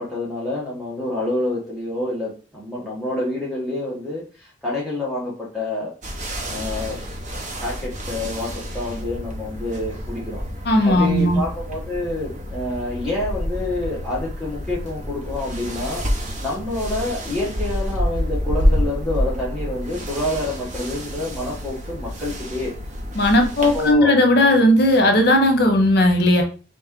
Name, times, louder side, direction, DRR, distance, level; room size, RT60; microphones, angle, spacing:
voice 1, 0.0-5.9 6.4-7.0 7.6-10.4 10.8-16.0 16.4-22.7 23.6-24.2, left 2 dB, ahead, -7 dB, 1.3 m, -27 dB
sound 1, 6.0-23.9, equal, 40° right, 1.0 m, -28 dB
voice 2, 10.6-11.4 23.1-26.4, left 1 dB, 60° left, 4 dB, 0.9 m, -16 dB
4.1 x 3.1 x 3.7 m, 0.36 s
head